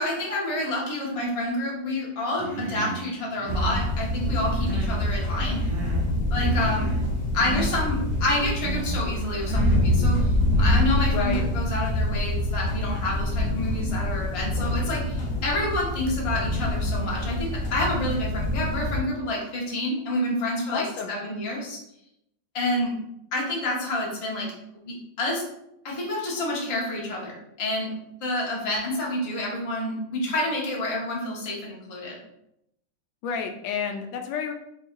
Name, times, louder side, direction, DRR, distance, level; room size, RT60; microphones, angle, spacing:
voice 1, 0.0-5.6 6.3-6.9 7.3-21.8 22.5-22.9 23.3-24.5 24.8-25.4 25.8-27.9 28.2-32.2, left 1 dB, 30° left, -3 dB, 0.6 m, -28 dB
Human voice, 2.4-3.1 3.4-3.8 4.3-5.1 5.3-6.1 6.3-7.1 7.4-7.7 8.3-8.9 9.4-9.9, right 2 dB, 35° right, 0.9 m, -34 dB
sound 1, 3.5-19.0, left 1 dB, 45° left, 1.0 m, -26 dB
voice 2, 11.1-11.4 20.7-21.1 33.2-34.5, left 6 dB, 85° left, 4 dB, 1.3 m, -30 dB
3.0 x 2.8 x 4.4 m, 0.81 s
omnidirectional pair, 2.0 m